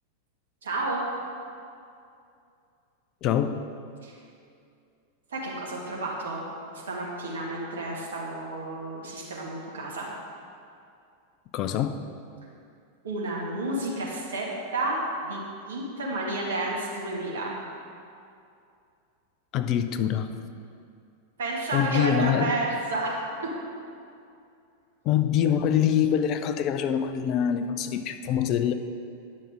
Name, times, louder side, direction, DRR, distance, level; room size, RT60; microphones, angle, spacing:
voice 1, 0.6-1.0 4.0-4.1 5.3-6.4 6.7-10.1 13.0-15.4 15.7-17.5 21.4-23.2, right 2 dB, 65° right, -4 dB, 2.0 m, -31 dB
voice 2, 3.2-3.6 11.5-12.0 19.5-20.4 21.7-22.5 25.0-28.7, left 9 dB, 40° left, 9 dB, 0.5 m, -25 dB
10.0 x 6.3 x 4.8 m, 2.5 s
figure-of-eight pair, 90°, 0 cm